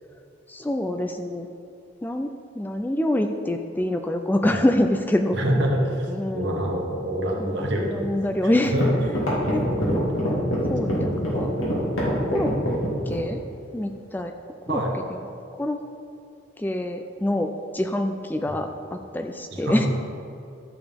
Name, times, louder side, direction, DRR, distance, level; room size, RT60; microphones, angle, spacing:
voice 1, 0.5-1.5 2.0-2.3 2.6-5.4 6.1-6.6 7.4-8.7 9.5-10.1 10.7-11.5 12.3-12.6 13.1-13.4 13.7-14.3 14.7-14.8 15.5-15.8 16.6-19.9, left 1 dB, 10° left, 5 dB, 0.3 m, -26 dB
voice 2, 5.3-8.1 8.4-8.8 9.3-10.2 10.8-11.4 14.7-14.9 18.5-18.6 19.5-19.9, equal, 65° right, -1 dB, 1.4 m, -27 dB
sound 1, 8.2-8.3 8.7-13.3, equal, 85° left, 2.6 m, -25 dB
13.0 x 7.0 x 3.6 m, 2.5 s
head